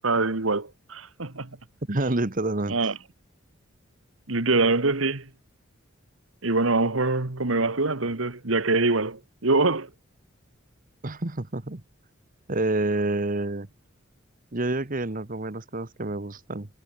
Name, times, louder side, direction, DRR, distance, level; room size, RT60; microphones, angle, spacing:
voice 1, 0.0-1.5 2.7-3.0 4.3-5.3 6.4-9.9, right 3 dB, 80° right, 1.9 m, -24 dB
voice 2, 1.9-2.8 11.0-11.8 12.5-13.7 14.5-16.7, right 2 dB, 45° right, 1.4 m, -28 dB
head